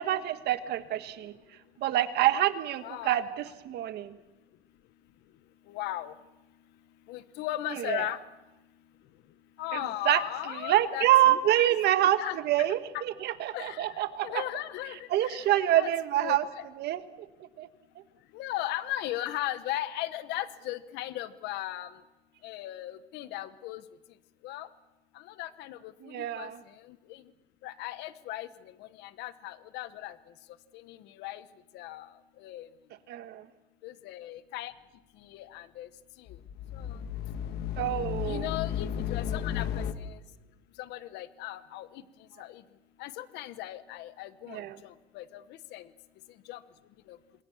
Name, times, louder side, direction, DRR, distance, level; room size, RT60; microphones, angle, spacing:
voice 1, 0.0-1.3 1.8-4.1 7.7-8.1 9.7-14.4 15.1-16.5 16.8-17.7 26.0-26.6 33.1-33.5 37.8-38.5 44.5-44.8, right 13 dB, 75° right, 10 dB, 1.5 m, -27 dB
voice 2, 2.8-3.2 5.7-6.1 7.1-8.2 9.6-11.7 12.2-12.7 12.9-13.0 13.5-15.5 15.7-15.9 16.2-16.4 18.3-22.0 22.4-23.8 24.4-24.7 25.1-26.5 26.9-27.2 27.6-28.5 28.8-30.2 30.7-31.4 31.7-32.1 32.4-32.7 33.8-34.7 35.3-35.9 36.7-36.9 38.2-40.2 40.8-42.0 42.4-42.6 43.0-45.4 45.7-45.9 46.5-46.6 47.1-47.2, left 14 dB, 90° left, 14 dB, 1.1 m, -37 dB
sound 1, 36.3-39.9, left 9 dB, 70° left, 1.6 m, -33 dB
27.0 x 21.5 x 7.2 m, 1.1 s
cardioid pair, 110°, 17 cm